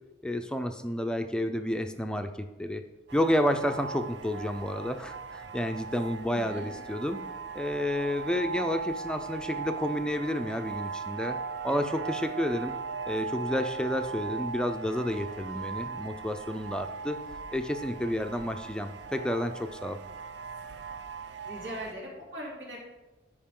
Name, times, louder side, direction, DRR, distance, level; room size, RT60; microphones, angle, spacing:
voice 1, 0.2-2.8 3.1-7.2 7.5-11.4 11.6-12.7 13.1-17.2 17.5-20.0, left 1 dB, 5° left, 6 dB, 0.4 m, -30 dB
sound 1, 3.1-21.9, right 5 dB, 65° right, 0.4 m, -39 dB
voice 2, 6.3-6.7 21.4-22.8, right 1 dB, 85° right, -4 dB, 3.3 m, -40 dB
13.0 x 5.1 x 3.7 m, 1.1 s
head